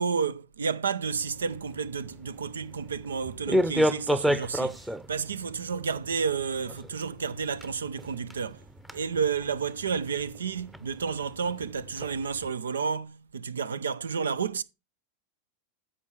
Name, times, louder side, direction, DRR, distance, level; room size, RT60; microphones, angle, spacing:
voice 1, 0.0-4.8 5.1-8.6 8.9-14.6, right 6 dB, 85° right, 0.5 m, -31 dB
sound 1, 1.0-12.5, equal, 5° right, 0.7 m, -33 dB
9.4 x 5.8 x 4.6 m
hypercardioid pair, 95°, 0 cm